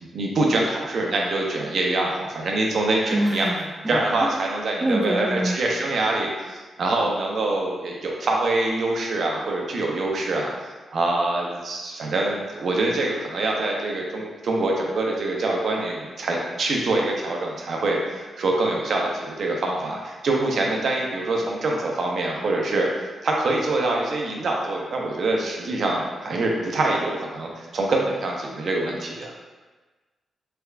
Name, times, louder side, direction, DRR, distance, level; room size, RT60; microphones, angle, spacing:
voice 1, 0.1-3.5 3.9-22.9 23.2-29.3, right 2 dB, 60° right, -1 dB, 0.6 m, -25 dB
voice 2, 3.1-4.3 4.8-5.6, right 1 dB, 20° right, -1 dB, 0.3 m, -25 dB
3.3 x 3.3 x 2.4 m, 1.3 s
cardioid pair, 100°, 0 cm